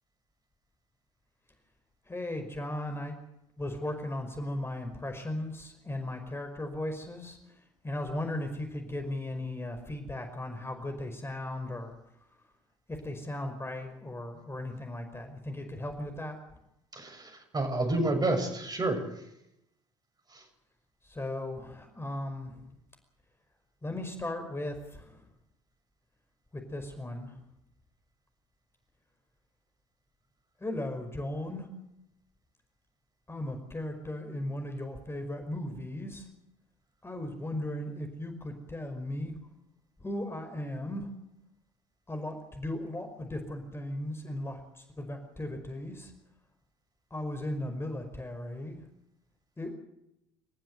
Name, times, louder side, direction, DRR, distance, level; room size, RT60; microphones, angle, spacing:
voice 1, 2.1-3.1 3.6-7.4 7.8-11.9 12.9-16.4 21.1-22.6 23.8-25.2 26.5-27.3 30.6-31.7 33.3-36.3 37.0-39.3 40.0-41.1 42.1-44.6 45.0-46.1 47.1-48.8 49.6-49.8, left 1 dB, 15° left, 5 dB, 5.2 m, -36 dB
voice 2, 16.9-19.0, right 2 dB, 25° right, 6 dB, 7.0 m, -29 dB
29.0 x 14.5 x 8.0 m, 0.84 s
figure-of-eight pair, 60°, 16 cm